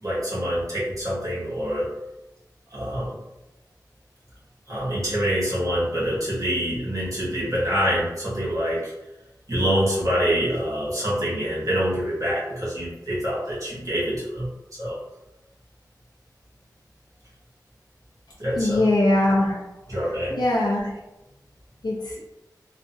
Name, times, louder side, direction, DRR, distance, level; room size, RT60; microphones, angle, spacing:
voice 1, 0.0-1.9 2.7-3.1 4.7-8.9 9.5-14.5 14.8-15.0 18.4-18.8 19.9-20.4, equal, 50° right, -8 dB, 1.3 m, -25 dB
voice 2, 18.6-19.6 20.4-20.9 21.8-22.2, left 1 dB, 85° left, -5 dB, 0.5 m, -21 dB
3.5 x 2.1 x 2.6 m, 0.98 s
wide cardioid pair, 60°, 7 cm